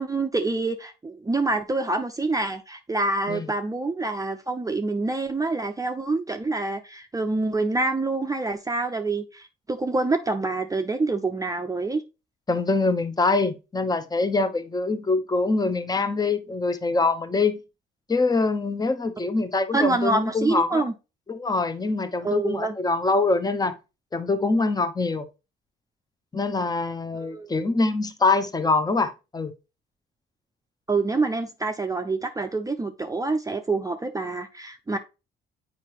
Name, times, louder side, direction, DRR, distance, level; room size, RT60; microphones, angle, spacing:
voice 1, 0.0-12.0 19.7-20.9 22.2-22.7 27.1-27.5 30.9-35.0, right 3 dB, 15° right, 0.6 m, -26 dB
voice 2, 12.5-17.6 18.1-20.8 21.3-23.7 24.1-25.3 26.3-29.5, left 3 dB, 20° left, 0.9 m, -24 dB
7.3 x 4.8 x 3.0 m
cardioid pair, 90°, 20 cm